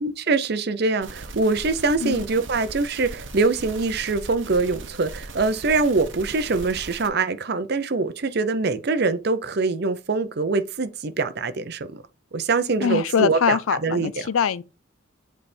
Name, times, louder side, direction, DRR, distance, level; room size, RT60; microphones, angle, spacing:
voice 1, 0.0-12.0 12.3-14.1, right 3 dB, 50° right, 0.6 m, -24 dB
sound 1, 1.0-7.1, right 3 dB, 65° right, 1.0 m, -39 dB
voice 2, 12.8-14.6, left 7 dB, 85° left, 0.4 m, -23 dB
8.2 x 3.4 x 4.3 m
head